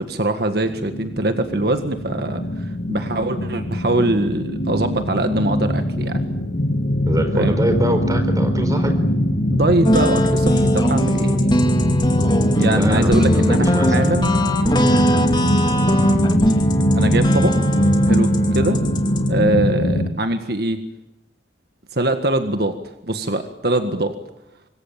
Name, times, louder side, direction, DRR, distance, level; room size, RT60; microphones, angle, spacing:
voice 1, 0.0-6.3 7.3-7.7 9.5-11.6 12.6-14.3 17.0-17.5 18.1-18.8 19.3-20.8 21.9-22.7 23.1-24.1, right 1 dB, 60° right, 7 dB, 1.7 m, -22 dB
sound 1, 0.7-20.1, equal, 60° left, 2.2 m, -21 dB
voice 2, 7.1-9.0 11.3-11.4 12.7-13.9, right 1 dB, 20° right, 7 dB, 4.5 m, -24 dB
sound 2, 9.8-19.3, equal, 25° left, 2.6 m, -22 dB
26.0 x 20.5 x 9.0 m, 0.92 s
head